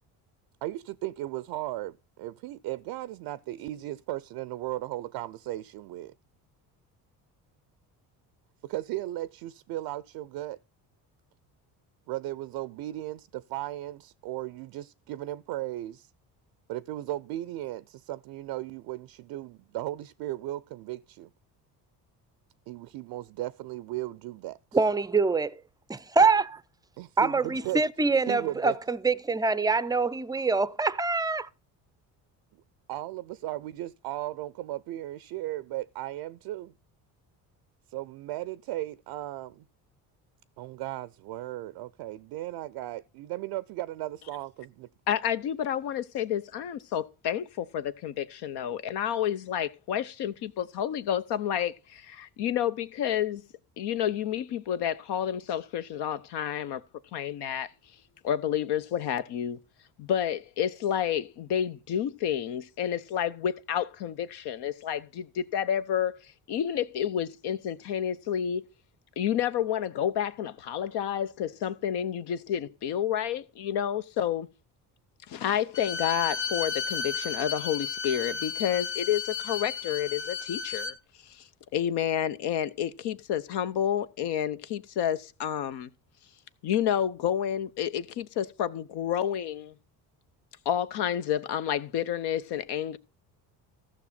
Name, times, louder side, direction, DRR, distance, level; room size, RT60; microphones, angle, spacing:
voice 1, 0.6-6.1 8.6-10.6 12.1-16.1 16.7-21.3 22.7-24.6 27.0-27.8 28.3-28.7 32.9-36.7 37.9-39.7 40.6-44.9, right 15 dB, 70° right, 0.5 m, -36 dB
voice 2, 24.7-25.5 25.9-26.6 27.2-31.5, right 4 dB, 10° right, 0.5 m, -25 dB
voice 3, 45.1-53.5 53.8-56.8 57.1-58.0 58.2-59.6 60.0-68.7 69.2-74.5 75.3-85.9 86.6-89.8 90.6-93.0, left 9 dB, 70° left, 0.9 m, -30 dB
Bowed string instrument, 75.7-81.0, left 6 dB, 45° left, 1.6 m, -33 dB
14.0 x 6.2 x 4.3 m
supercardioid pair, 75°, 42 cm